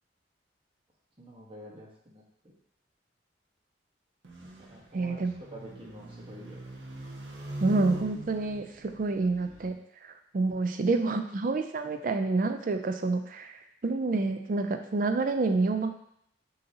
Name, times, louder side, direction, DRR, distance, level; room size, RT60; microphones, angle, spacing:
voice 1, 1.2-2.2 4.4-5.2 5.5-6.7 11.8-12.1, equal, 30° right, -4 dB, 1.0 m, -48 dB
sound 1, 4.2-9.7, equal, 85° right, 0.8 m, -42 dB
voice 2, 4.9-5.4 7.6-9.7 10.0-15.9, right 3 dB, 45° right, 7 dB, 0.4 m, -28 dB
6.5 x 2.8 x 2.8 m, 0.73 s
head